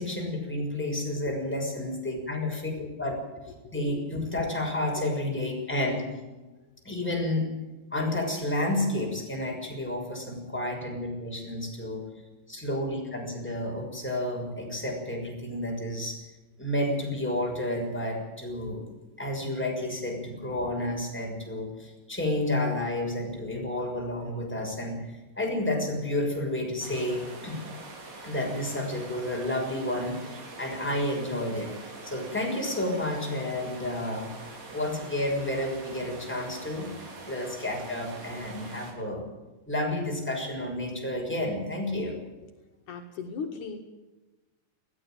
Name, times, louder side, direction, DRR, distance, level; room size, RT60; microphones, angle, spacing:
voice 1, 0.0-3.2 3.7-6.1 6.8-7.5 7.9-12.0 12.5-16.2 16.6-18.8 19.2-25.0 25.4-27.6 28.2-34.3 34.7-39.2 39.7-42.2, left 1 dB, 5° left, -1 dB, 6.2 m, -31 dB
sound 1, 26.8-38.9, right 3 dB, 80° right, 5.4 m, -44 dB
voice 2, 42.9-43.8, left 5 dB, 70° left, 3 dB, 3.1 m, -37 dB
21.5 x 15.0 x 9.2 m, 1.1 s
omnidirectional pair, 3.8 m